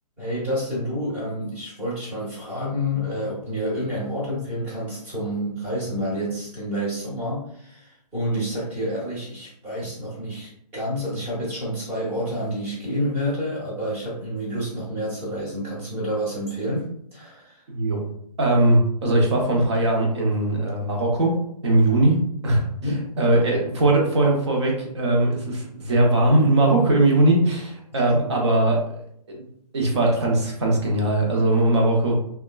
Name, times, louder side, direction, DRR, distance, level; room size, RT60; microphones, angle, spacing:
voice 1, 0.2-17.6 22.8-23.1 25.9-26.0 27.9-28.0, equal, 10° right, -8 dB, 0.8 m, -29 dB
voice 2, 17.7-18.0 18.4-21.4 21.6-22.2 22.4-28.8 29.3-29.4 29.7-32.2, right 2 dB, 40° right, 0 dB, 0.8 m, -20 dB
2.9 x 2.2 x 2.2 m, 0.70 s
figure-of-eight pair, 145°, 21 cm